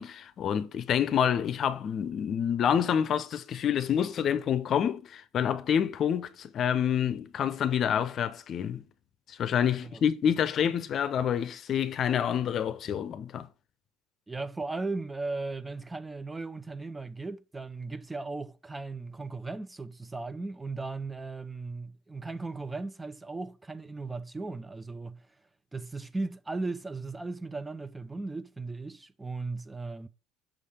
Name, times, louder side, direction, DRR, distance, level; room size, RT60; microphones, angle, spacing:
voice 1, 0.0-8.8 9.3-13.5, left 8 dB, 45° left, 0.6 m, -28 dB
voice 2, 14.3-25.3 25.7-30.1, right 3 dB, 15° right, 0.5 m, -37 dB
6.2 x 3.3 x 5.5 m
supercardioid pair, 100°, 0 cm